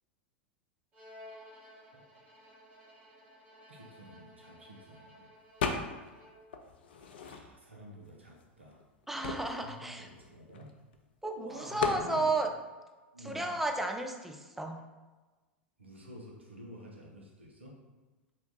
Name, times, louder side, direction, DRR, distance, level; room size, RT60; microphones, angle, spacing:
Bowed string instrument, 0.9-6.6, equal, 30° right, 1.3 m, -55 dB
voice 1, 3.7-5.3 7.2-8.8 9.5-10.7 11.3-12.3 13.1-13.6 15.8-17.8, equal, 85° right, -1 dB, 0.8 m, -49 dB
sound 1, 5.6-6.2 6.5-7.8 8.4-8.5 8.7-11.0 11.8-12.1, left 6 dB, 65° left, 0.4 m, -36 dB
voice 2, 9.1-10.1 11.2-12.5 13.2-14.8, right 2 dB, 5° right, 3 dB, 0.4 m, -33 dB
3.4 x 2.5 x 3.8 m, 1.2 s
figure-of-eight pair, 85°, 6 cm